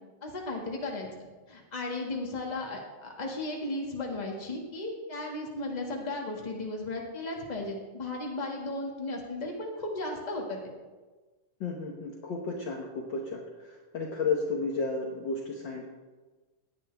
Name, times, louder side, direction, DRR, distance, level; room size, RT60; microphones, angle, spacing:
voice 1, 0.2-1.1 1.5-10.6, left 2 dB, 20° left, -1 dB, 1.4 m, -35 dB
voice 2, 11.6-15.9, left 4 dB, 70° left, 0 dB, 1.1 m, -33 dB
17.0 x 10.5 x 3.5 m, 1.3 s
omnidirectional pair, 3.7 m